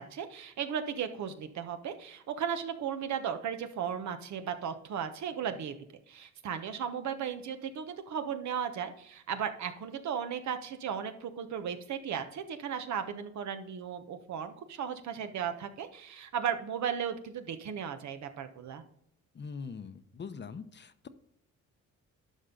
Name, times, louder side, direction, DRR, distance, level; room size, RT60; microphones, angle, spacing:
voice 1, 0.0-5.8 6.1-18.8, right 8 dB, 70° right, 8 dB, 1.1 m, -36 dB
voice 2, 19.3-21.1, left 5 dB, 35° left, 11 dB, 0.8 m, -42 dB
11.5 x 5.5 x 3.8 m, 0.73 s
cardioid pair, 90°, 30 cm